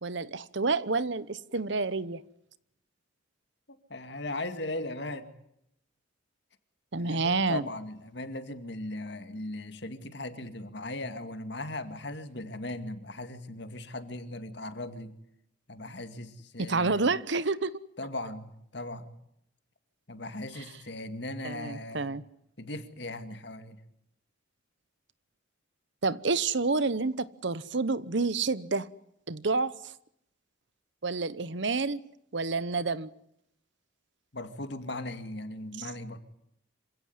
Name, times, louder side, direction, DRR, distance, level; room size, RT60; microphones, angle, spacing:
voice 1, 0.0-2.2 6.9-7.6 16.6-17.7 21.4-22.2 26.0-28.9 29.3-29.9 31.0-32.0 32.3-33.1 35.8-35.9, right 3 dB, 65° right, 0.9 m, -29 dB
voice 2, 3.9-5.3 7.0-15.1 15.7-17.0 18.0-19.1 20.1-22.1 22.6-23.8 34.3-36.2, left 2 dB, 60° left, 2.2 m, -38 dB
26.5 x 17.0 x 9.7 m
head